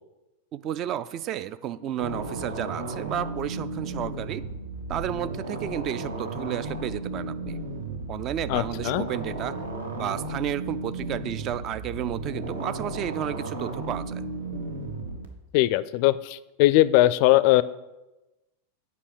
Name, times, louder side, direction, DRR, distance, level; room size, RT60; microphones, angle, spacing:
voice 1, 0.5-4.4 4.9-7.6 8.1-9.6 10.0-14.2, right 11 dB, 35° right, 15 dB, 0.4 m, -32 dB
sound 1, 2.0-15.3, right 2 dB, 70° right, 1.1 m, -34 dB
voice 2, 8.5-9.1 15.5-17.6, left 16 dB, 45° left, 17 dB, 0.4 m, -20 dB
8.3 x 5.5 x 6.4 m, 1.0 s
figure-of-eight pair, 90°, 0 cm